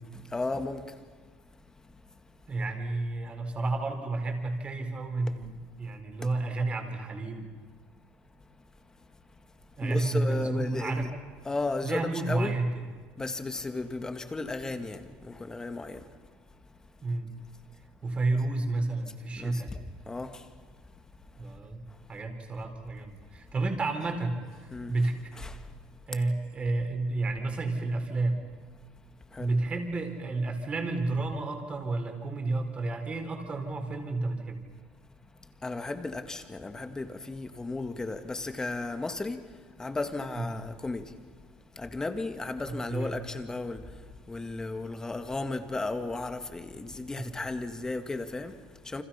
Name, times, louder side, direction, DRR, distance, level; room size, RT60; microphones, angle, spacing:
voice 1, 0.1-1.0 9.8-11.1 11.5-12.6 13.2-16.2 19.4-19.6 20.1-20.5 24.7-24.9 25.4-25.7 29.3-29.5 35.6-41.2 41.8-49.0, left 3 dB, 15° left, 1.9 m, -35 dB
voice 2, 2.5-7.5 9.8-11.1 11.8-12.8 17.0-17.3 18.0-19.7 21.4-21.8 22.1-24.4 24.9-25.1 26.1-28.4 29.4-34.6 40.3-40.6 42.6-43.1 47.2-47.3, right 2 dB, 30° right, 4.3 m, -31 dB
29.5 x 26.0 x 5.8 m
cardioid pair, 120°, 4 cm